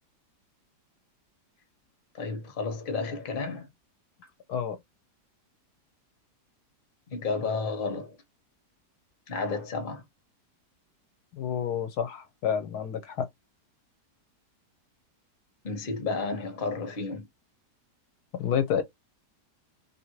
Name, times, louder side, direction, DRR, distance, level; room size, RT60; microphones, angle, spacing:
voice 1, 2.1-3.7 7.1-8.2 9.3-10.0 15.6-17.3, left 4 dB, 40° left, 0.8 m, -32 dB
voice 2, 11.3-13.3 18.3-18.8, left 8 dB, 70° left, 1.0 m, -29 dB
2.7 x 2.6 x 2.9 m
omnidirectional pair, 1.8 m